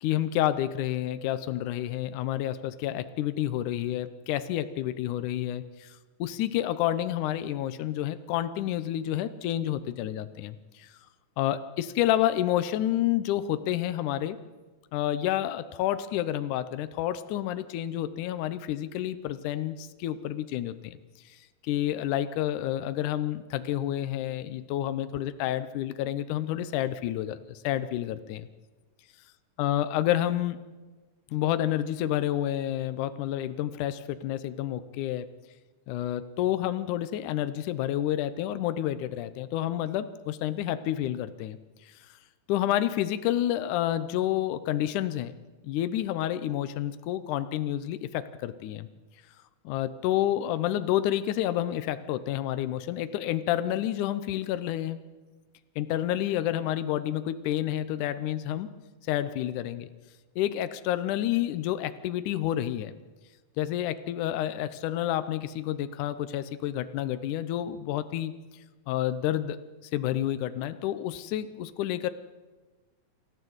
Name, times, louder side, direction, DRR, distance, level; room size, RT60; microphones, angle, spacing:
voice 1, 0.0-10.9 11.4-14.4 14.9-21.0 21.3-21.4 21.6-28.5 29.6-30.6 31.3-35.3 35.9-41.6 41.9-42.0 42.5-45.3 45.6-48.9 49.7-55.0 55.8-58.7 59.1-59.9 60.4-62.9 63.6-68.4 68.9-69.6 69.9-72.1, left 12 dB, 80° left, 12 dB, 2.2 m, -29 dB
27.5 x 13.5 x 8.0 m, 1.3 s
omnidirectional pair, 3.6 m